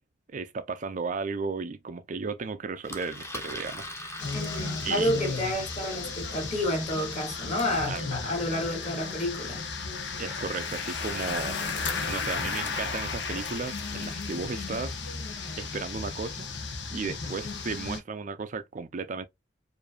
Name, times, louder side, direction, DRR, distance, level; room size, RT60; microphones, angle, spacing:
voice 1, 0.3-3.9 4.2-4.3 4.8-5.4 7.8-8.1 10.2-11.6 12.1-15.1 15.6-16.5 16.9-19.3, right 4 dB, 45° right, 0.4 m, -34 dB
Engine, 2.8-8.1, left 1 dB, 15° left, 0.8 m, -42 dB
sound 1, 4.2-18.0, left 4 dB, 70° left, 0.9 m, -34 dB
voice 2, 4.3-9.7, left 1 dB, 40° left, 1.9 m, -30 dB
4.9 x 2.6 x 2.3 m
head